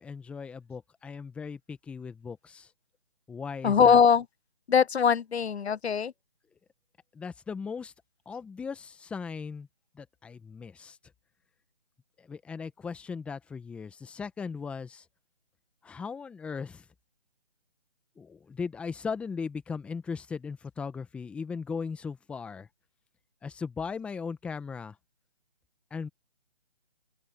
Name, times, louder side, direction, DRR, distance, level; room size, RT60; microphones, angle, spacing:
voice 1, 0.0-2.7 3.3-4.0 7.1-7.9 8.2-9.7 9.9-11.0 12.2-15.0 15.8-16.8 18.2-22.7 23.4-25.0 25.9-26.1, left 5 dB, 5° left, 1.3 m, -38 dB
voice 2, 3.6-4.2 4.7-6.1, left 6 dB, 80° left, 0.6 m, -21 dB
open air
figure-of-eight pair, 150°, 32 cm